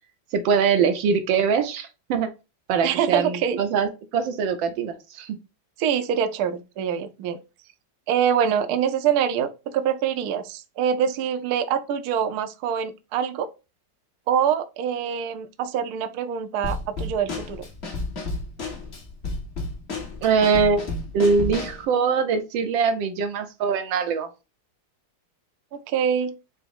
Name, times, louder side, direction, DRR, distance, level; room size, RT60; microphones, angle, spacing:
voice 1, 0.3-2.3 2.7-5.4 20.2-20.9 21.1-24.3, right 5 dB, 90° right, 1.5 m, -22 dB
voice 2, 2.8-3.6 5.8-7.4 8.1-13.5 14.3-17.7 25.7-26.3, right 8 dB, 70° right, 1.0 m, -25 dB
Drum kit / Snare drum, 16.6-21.8, left 2 dB, 40° left, 1.2 m, -32 dB
5.1 x 2.0 x 4.6 m
omnidirectional pair, 2.0 m